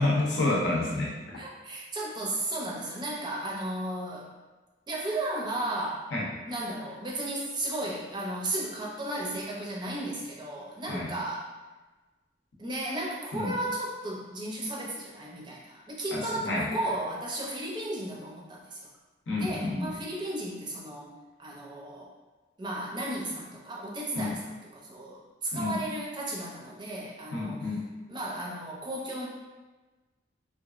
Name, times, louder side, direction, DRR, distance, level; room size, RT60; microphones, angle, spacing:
voice 1, 0.0-1.4 6.1-6.3 10.9-11.1 13.3-13.5 16.1-16.7 19.3-19.9 24.2-24.3 25.5-25.8 27.3-27.9, left 2 dB, 80° left, -4 dB, 0.7 m, -29 dB
voice 2, 1.4-4.3 4.9-6.1 6.5-11.5 12.6-18.9 19.4-21.1 21.4-22.1 22.6-27.8 28.1-29.3, right 1 dB, 25° right, -3 dB, 0.5 m, -34 dB
2.9 x 2.5 x 2.4 m, 1.2 s
head